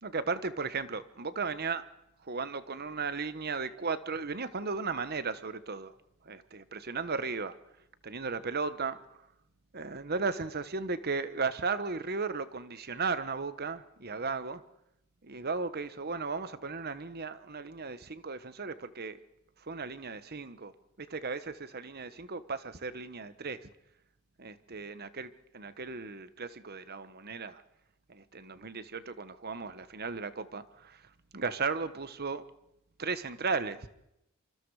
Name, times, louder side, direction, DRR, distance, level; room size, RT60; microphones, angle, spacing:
voice 1, 0.0-1.8 2.2-5.9 6.2-7.6 8.0-9.0 9.7-14.6 15.2-19.2 19.6-20.7 21.0-23.7 24.4-27.6 28.1-31.0 31.3-32.5 33.0-33.9, right 4 dB, 45° right, 13 dB, 1.3 m, -35 dB
25.5 x 25.0 x 4.9 m, 0.83 s
head